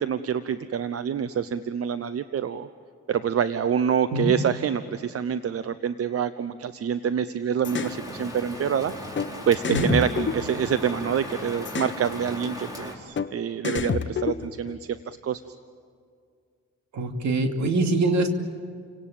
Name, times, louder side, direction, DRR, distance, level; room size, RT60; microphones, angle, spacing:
voice 1, 0.0-2.7 3.1-9.2 9.5-15.4, right 8 dB, 50° right, 12 dB, 0.8 m, -26 dB
sound 1, 7.6-8.0 9.2-9.3 9.6-11.1 11.7-12.0 13.2-13.3 13.6-14.7, left 6 dB, 40° left, 1.1 m, -29 dB
Rain, 7.6-12.9, left 1 dB, 10° right, 4.8 m, -37 dB
voice 2, 16.9-18.3, right 2 dB, 65° right, 5 dB, 2.7 m, -24 dB
30.0 x 18.0 x 8.9 m, 2.2 s
cardioid pair, 90°, 30 cm